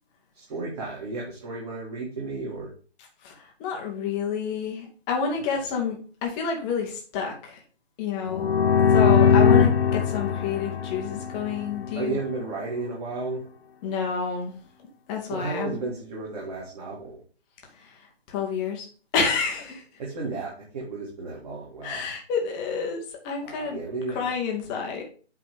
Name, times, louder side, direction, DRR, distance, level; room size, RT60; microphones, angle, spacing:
voice 1, 0.3-2.7 5.3-5.4 11.9-13.4 15.3-17.2 20.0-22.1 23.4-24.2, right 3 dB, 35° right, -4 dB, 2.1 m, -33 dB
voice 2, 3.2-7.6 8.0-8.6 8.9-12.2 13.8-14.6 15.1-15.8 17.7-18.9 19.1-19.8 21.8-23.8 24.1-25.0, left 6 dB, 10° left, 1 dB, 0.5 m, -29 dB
sound 1, 8.3-12.0, left 6 dB, 65° left, 1.0 m, -20 dB
8.2 x 3.4 x 4.9 m, 0.39 s
figure-of-eight pair, 140°, 33 cm